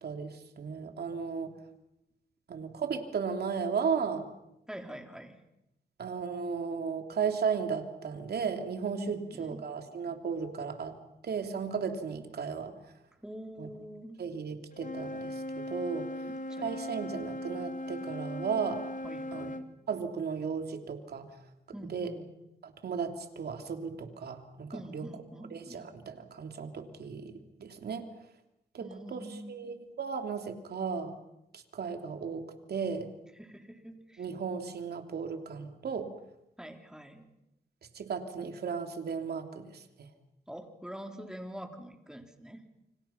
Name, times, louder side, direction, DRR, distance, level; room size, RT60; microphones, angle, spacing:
voice 1, 0.0-1.5 2.5-4.3 6.0-11.0 11.2-12.7 13.6-13.7 14.2-16.1 16.6-18.8 19.3-19.5 19.9-21.3 21.9-22.1 22.6-25.1 25.5-27.3 27.6-28.1 28.7-31.1 31.5-33.1 34.2-36.1 37.9-39.8, right 6 dB, 70° right, 6 dB, 3.1 m, -35 dB
voice 2, 4.7-5.4 9.1-9.6 13.2-14.2 16.3-16.8 19.0-19.6 21.7-22.3 24.7-25.9 28.8-29.8 33.4-34.3 36.6-37.3 40.5-42.6, equal, 5° right, 4 dB, 3.8 m, -45 dB
Wind instrument woodwind instrument, 14.7-19.7, left 1 dB, 50° left, 2.2 m, -38 dB
28.5 x 26.0 x 5.8 m, 0.86 s
cardioid pair, 80°, 17 cm